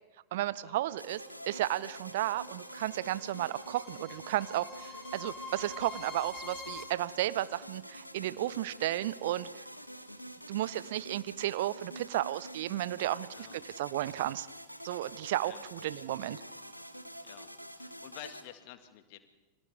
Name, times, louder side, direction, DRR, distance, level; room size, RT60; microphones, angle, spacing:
voice 1, 0.3-9.6 10.5-13.3 13.8-14.5 14.8-16.4, right 14 dB, 55° right, 18 dB, 0.6 m, -33 dB
sound 1, 0.8-6.8, left 3 dB, 5° left, 2.6 m, -47 dB
sound 2, 1.0-18.4, equal, 90° left, 1.3 m, -47 dB
voice 2, 13.3-13.6 15.4-16.1 17.2-17.5 17.7-19.2, left 12 dB, 45° left, 9 dB, 1.9 m, -50 dB
30.0 x 24.5 x 3.6 m, 1.1 s
figure-of-eight pair, 90°, 0 cm